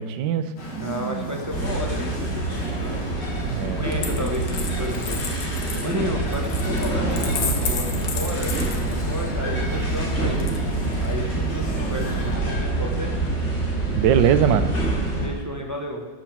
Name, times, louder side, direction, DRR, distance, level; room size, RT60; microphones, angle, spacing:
voice 1, 0.0-1.4 3.5-3.9 13.9-14.7, right 9 dB, 70° right, 11 dB, 1.2 m, -22 dB
sound 1, 0.6-12.4, equal, 80° left, 2.9 m, -36 dB
voice 2, 0.8-2.7 3.4-5.2 5.5-5.6 5.8-10.7 11.0-13.1 15.2-16.1, equal, 20° right, 0 dB, 0.4 m, -32 dB
sound 2, 1.5-15.3, right 2 dB, 45° left, 4.0 m, -26 dB
Coin (dropping), 3.9-9.3 10.4-11.1, left 6 dB, 65° left, 1.6 m, -33 dB
13.5 x 5.3 x 6.1 m, 1.3 s
omnidirectional pair, 2.2 m